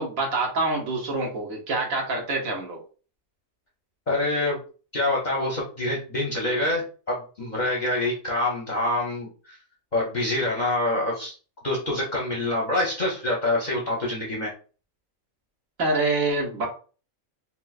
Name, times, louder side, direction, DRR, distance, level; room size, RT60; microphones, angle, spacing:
voice 1, 0.0-2.8 15.8-16.7, right 2 dB, 70° right, 0 dB, 1.4 m, -26 dB
voice 2, 4.1-4.6 4.9-9.6 9.9-11.3 11.6-14.5, left 1 dB, 45° left, -4 dB, 0.7 m, -26 dB
4.3 x 2.1 x 2.3 m, 0.37 s
omnidirectional pair, 1.5 m